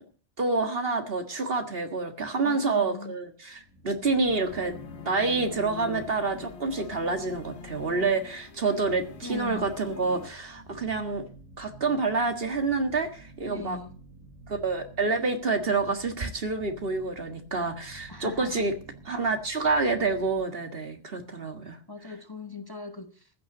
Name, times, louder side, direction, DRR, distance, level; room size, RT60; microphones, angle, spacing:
voice 1, 0.4-4.8 5.1-11.3 11.6-13.8 14.5-18.7 19.1-21.8, right 3 dB, 55° right, 1.9 m, -28 dB
voice 2, 2.4-3.2 9.2-9.7 13.5-13.9 18.1-18.7 21.9-23.3, left 3 dB, 20° left, 1.1 m, -40 dB
sound 1, 3.4-20.5, right 1 dB, 15° right, 2.7 m, -50 dB
sound 2, 4.3-10.3, left 7 dB, 70° left, 1.3 m, -44 dB
14.5 x 6.8 x 9.4 m
omnidirectional pair, 1.1 m